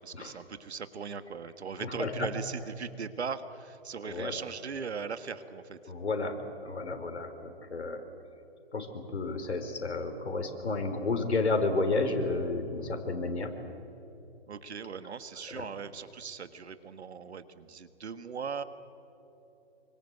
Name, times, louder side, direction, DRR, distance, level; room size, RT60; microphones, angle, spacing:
voice 1, 0.0-5.8 14.5-18.6, right 6 dB, 80° right, 11 dB, 1.8 m, -39 dB
voice 2, 1.8-2.3 4.0-4.4 5.9-6.4 6.6-8.0 8.7-13.5 15.5-15.6, left 3 dB, 85° left, 7 dB, 4.0 m, -31 dB
27.0 x 24.5 x 8.1 m, 2.9 s
hypercardioid pair, 135°, 33 cm